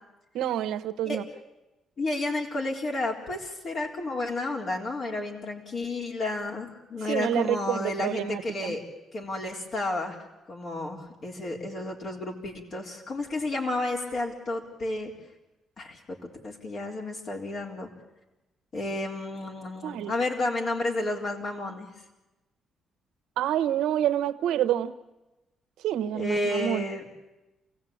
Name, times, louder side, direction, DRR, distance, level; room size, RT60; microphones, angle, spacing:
voice 1, 0.3-1.2 7.1-8.8 19.8-20.1 23.4-24.9 25.8-26.9, right 11 dB, 85° right, 11 dB, 1.1 m, -28 dB
voice 2, 2.0-8.8 9.1-10.2 10.5-15.1 15.8-16.2 16.4-17.9 18.7-21.9 26.1-27.0, left 2 dB, 50° left, 0 dB, 3.9 m, -31 dB
28.0 x 16.5 x 8.7 m, 1.0 s
cardioid pair, 90°, 0 cm